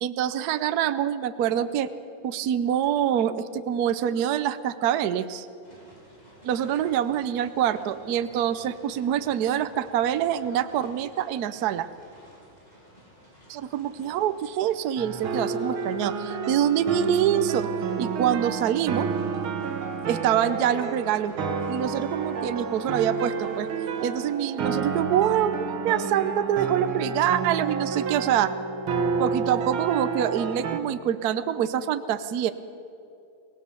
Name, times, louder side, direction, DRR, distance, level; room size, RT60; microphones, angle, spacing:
voice 1, 0.0-1.9 2.2-5.5 6.4-11.9 13.5-17.7 18.0-19.1 20.1-21.3 21.7-23.7 24.0-28.5 29.2-32.5, right 10 dB, 65° right, 12 dB, 1.0 m, -25 dB
sound 1, 5.6-24.2, equal, 20° left, 5.0 m, -53 dB
sound 2, 15.0-30.8, right 5 dB, 85° right, 2.2 m, -30 dB
24.0 x 18.0 x 6.9 m, 2.7 s
omnidirectional pair, 2.2 m